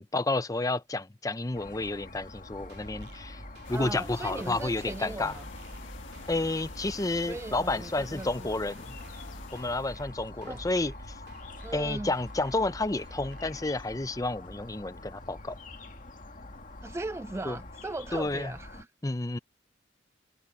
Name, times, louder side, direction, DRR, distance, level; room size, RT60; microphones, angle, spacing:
voice 1, 0.0-3.4 3.7-5.3 6.3-9.0 9.5-10.9 11.7-15.6 17.4-17.6 18.1-18.5 19.0-19.4, left 2 dB, 20° left, 0.7 m, -30 dB
sound 1, 1.5-18.8, left 2 dB, 45° left, 2.0 m, -46 dB
sound 2, 2.6-13.5, right 1 dB, 60° right, 3.5 m, -48 dB
sound 3, 3.6-10.1, left 4 dB, 85° left, 1.7 m, -48 dB
voice 2, 3.7-5.4 7.2-8.3 10.4-10.6 11.6-12.1 16.8-18.9, right 2 dB, 15° right, 0.3 m, -38 dB
head